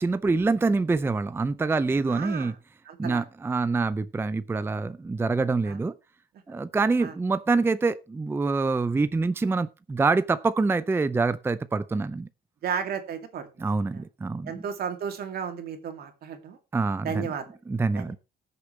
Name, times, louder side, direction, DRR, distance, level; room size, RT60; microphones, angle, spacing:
voice 1, 0.0-2.5 3.0-5.9 6.5-12.3 13.6-14.6 16.7-17.3 17.7-18.2, right 3 dB, 15° right, 0.5 m, -25 dB
voice 2, 2.1-2.5 2.9-3.2 5.7-5.8 7.0-7.1 12.6-13.5 13.9-14.0 14.4-16.6 17.0-17.4 18.0-18.1, right 7 dB, 70° right, 2.4 m, -33 dB
19.0 x 6.8 x 3.2 m
cardioid pair, 120°, 17 cm